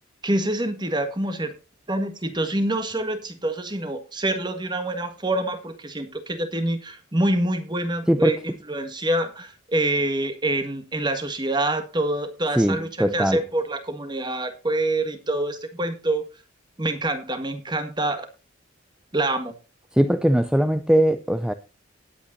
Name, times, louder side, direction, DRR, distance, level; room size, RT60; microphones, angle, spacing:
voice 1, 0.2-1.5 1.9-8.4 8.7-12.9 13.1-16.2 16.8-18.3 19.1-19.5, right 1 dB, 20° right, 1.6 m, -26 dB
voice 2, 8.1-8.4 12.6-13.4 19.9-21.5, equal, 5° right, 0.4 m, -20 dB
18.5 x 8.4 x 2.6 m
head